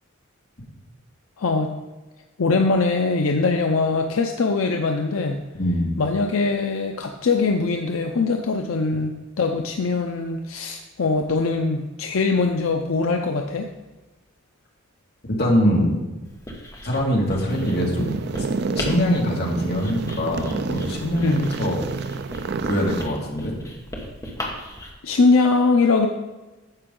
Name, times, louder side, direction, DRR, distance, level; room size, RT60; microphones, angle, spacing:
voice 1, 1.4-1.7 2.4-5.4 6.0-13.7 21.2-21.5 25.0-26.1, left 3 dB, 80° left, 4 dB, 0.6 m, -22 dB
voice 2, 5.6-5.9 15.3-15.9 16.8-18.1 18.4-18.5 18.7-21.8 22.6-23.6, left 1 dB, 50° left, -2 dB, 2.0 m, -23 dB
Writing, 16.3-24.9, left 1 dB, 15° left, 1.3 m, -37 dB
sound 1, 17.5-23.1, right 4 dB, 55° right, 0.4 m, -29 dB
9.9 x 6.9 x 3.8 m, 1.1 s
head